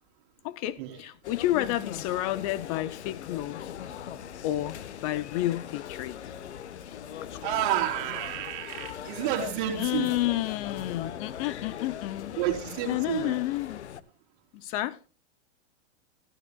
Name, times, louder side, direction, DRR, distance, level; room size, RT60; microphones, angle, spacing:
voice 1, 0.4-3.8 4.4-6.3 7.3-7.4 9.7-12.4 12.9-13.8 14.5-15.0, left 15 dB, 35° left, 0.4 m, -30 dB
sound 1, 1.2-14.0, left 9 dB, 90° left, 1.0 m, -40 dB
voice 2, 7.4-10.2 12.4-13.4, right 11 dB, 50° right, 3.2 m, -30 dB
15.5 x 13.0 x 2.2 m
hypercardioid pair, 140°, 33 cm